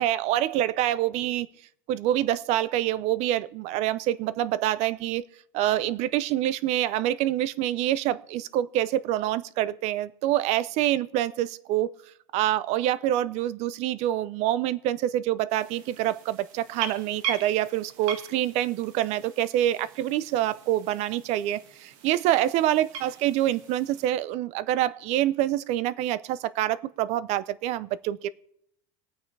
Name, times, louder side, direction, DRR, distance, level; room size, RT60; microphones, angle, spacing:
voice 1, 0.0-1.5 1.9-5.2 5.5-11.9 12.3-28.3, right 13 dB, 45° right, 0.6 m, -26 dB
sound 1, 15.5-24.1, right 8 dB, 75° right, 1.7 m, -40 dB
22.5 x 9.0 x 3.3 m
supercardioid pair, 155°, 16 cm